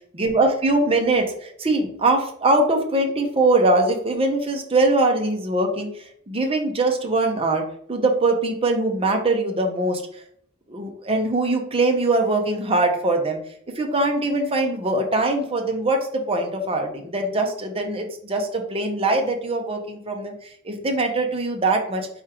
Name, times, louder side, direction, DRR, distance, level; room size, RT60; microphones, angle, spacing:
voice 1, 0.1-10.2 10.7-13.4 13.8-22.1, right 2 dB, 25° right, 3 dB, 0.7 m, -22 dB
4.6 x 3.6 x 2.9 m, 0.65 s
head